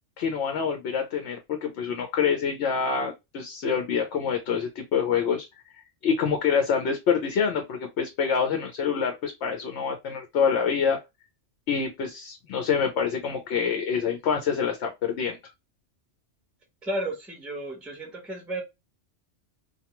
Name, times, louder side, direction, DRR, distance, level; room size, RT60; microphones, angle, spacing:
voice 1, 0.2-5.5 6.0-11.0 11.7-15.4, left 6 dB, 75° left, 4 dB, 0.9 m, -26 dB
voice 2, 16.8-18.6, right 1 dB, ahead, -2 dB, 0.7 m, -33 dB
2.3 x 2.2 x 2.9 m, 0.22 s
omnidirectional pair, 1.2 m